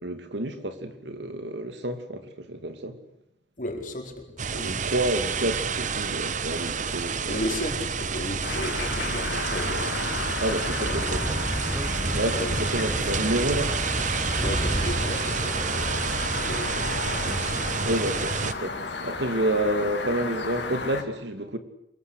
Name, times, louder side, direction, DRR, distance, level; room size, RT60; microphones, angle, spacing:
voice 1, 0.0-3.0 4.6-7.4 10.4-11.4 12.1-13.7 17.8-21.6, right 1 dB, 80° right, 2.6 m, -29 dB
voice 2, 3.6-4.8 7.3-10.0 10.8-11.2 12.3-12.5 14.4-17.6, left 1 dB, 45° left, 4.5 m, -35 dB
sound 1, 4.4-18.5, right 5 dB, 45° right, 1.1 m, -29 dB
sound 2, 8.4-21.0, left 3 dB, 75° left, 3.4 m, -33 dB
Speech / Wind, 10.3-15.2, equal, 10° right, 1.1 m, -33 dB
27.0 x 22.5 x 8.2 m
head